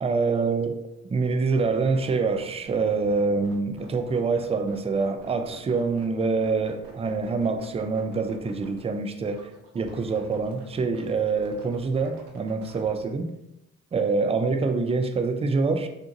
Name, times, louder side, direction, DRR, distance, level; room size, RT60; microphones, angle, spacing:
voice 1, 0.0-0.7 1.1-9.4 9.7-13.3 13.9-15.9, right 4 dB, 15° right, 7 dB, 0.3 m, -25 dB
sound 1, 1.3-12.9, right 3 dB, 75° right, 0.8 m, -48 dB
3.6 x 2.5 x 2.6 m, 0.87 s
hypercardioid pair, 50°, 39 cm